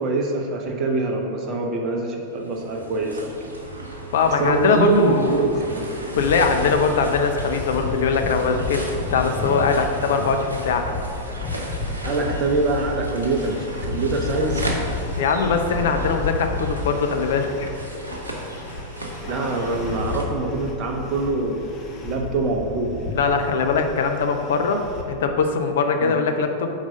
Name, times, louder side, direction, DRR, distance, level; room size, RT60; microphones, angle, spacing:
voice 1, 0.0-3.5 4.4-5.9 12.0-15.0 19.3-21.7 22.0-23.0 26.0-26.2, right 2 dB, 35° right, 2 dB, 0.6 m, -24 dB
sound 1, 2.3-20.2, right 1 dB, 80° right, 0.7 m, -35 dB
voice 2, 4.1-5.4 6.1-10.8 15.2-17.7 23.1-24.8 25.1-26.7, left 5 dB, 60° left, 5 dB, 0.5 m, -21 dB
sound 2, 6.2-25.0, left 3 dB, 35° left, 0.8 m, -32 dB
4.6 x 4.0 x 5.1 m, 2.6 s
figure-of-eight pair, 90°, 0 cm